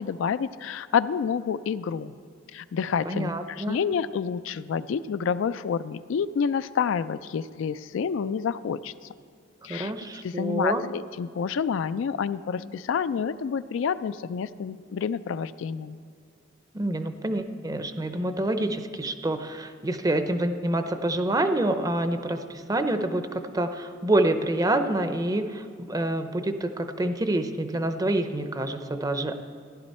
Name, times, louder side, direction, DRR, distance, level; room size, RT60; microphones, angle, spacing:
voice 1, 0.0-2.1 2.5-8.9 9.6-9.9 10.2-16.0, left 6 dB, 70° left, 14 dB, 0.3 m, -28 dB
voice 2, 3.0-3.8 9.7-10.8 16.7-29.4, right 1 dB, 20° right, 8 dB, 0.6 m, -27 dB
15.0 x 11.5 x 4.2 m, 2.1 s
head